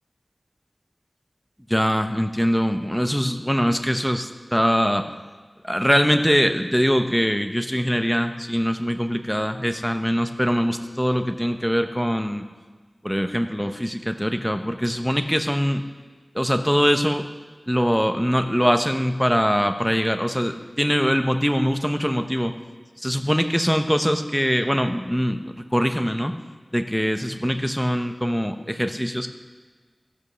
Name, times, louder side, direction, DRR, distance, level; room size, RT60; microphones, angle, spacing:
voice 1, 1.7-5.1 5.6-12.4 13.0-15.9 16.3-17.3 17.7-22.5 23.0-26.3 26.7-29.3, equal, 5° left, 7 dB, 0.8 m, -22 dB
14.5 x 5.2 x 6.3 m, 1.4 s
wide cardioid pair, 50°, 0 cm